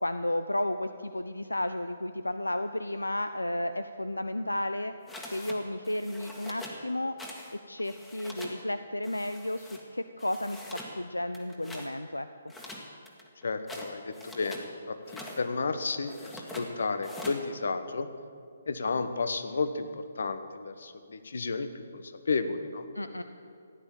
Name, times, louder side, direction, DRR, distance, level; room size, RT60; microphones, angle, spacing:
voice 1, 0.0-4.9 5.3-7.2 7.7-12.3 22.9-23.2, left 1 dB, 85° left, 10 dB, 0.5 m, -32 dB
sound 1, 5.1-5.6 5.8-6.8 7.2-7.5 7.8-8.6 9.0-9.8 10.2-10.9 11.3-11.9 12.5-14.7 15.0-15.4 16.1-16.7 17.0-17.4, left 1 dB, 10° left, 1.7 m, -44 dB
voice 2, 13.4-18.1 18.7-22.8, left 4 dB, 60° left, 10 dB, 1.1 m, -32 dB
14.5 x 10.0 x 7.3 m, 2.3 s
figure-of-eight pair, 135°, 0 cm